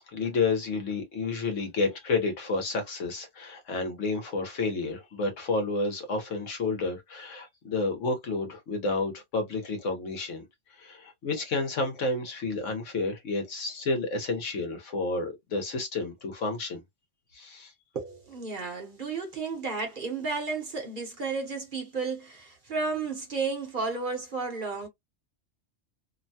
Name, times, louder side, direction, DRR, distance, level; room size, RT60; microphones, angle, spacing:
voice 1, 0.1-10.5 10.8-16.8 17.3-17.7, left 3 dB, 75° left, 1.3 m, -30 dB
voice 2, 17.9-24.9, right 4 dB, 45° right, 0.9 m, -32 dB
2.9 x 2.2 x 2.7 m
omnidirectional pair, 1.3 m